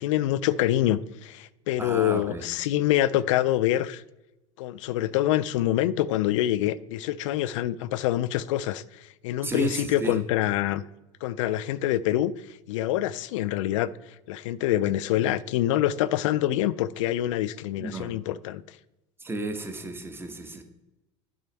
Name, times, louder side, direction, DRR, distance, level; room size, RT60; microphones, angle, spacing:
voice 1, 0.0-4.0 4.6-8.8 9.2-10.8 11.2-12.3 12.7-13.9 14.3-18.6, left 13 dB, 75° left, 0.4 m, -25 dB
voice 2, 1.8-2.4 9.4-10.2 17.8-18.2 19.2-20.6, right 2 dB, 15° right, 1.1 m, -33 dB
7.9 x 5.0 x 4.4 m
hypercardioid pair, 95°, 16 cm